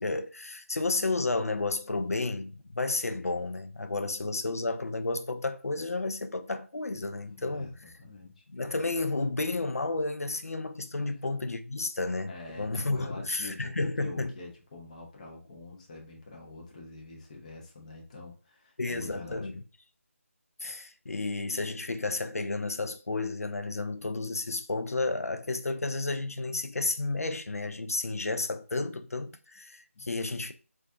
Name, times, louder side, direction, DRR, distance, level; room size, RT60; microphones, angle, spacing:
voice 1, 0.0-7.7 8.5-12.3 12.6-14.3 18.8-19.5 20.6-30.5, left 3 dB, 85° left, 0.4 m, -32 dB
voice 2, 7.2-8.5 12.3-19.6 29.9-30.1, left 2 dB, 30° left, 0.6 m, -46 dB
2.4 x 2.3 x 2.4 m
figure-of-eight pair, 160°, 8 cm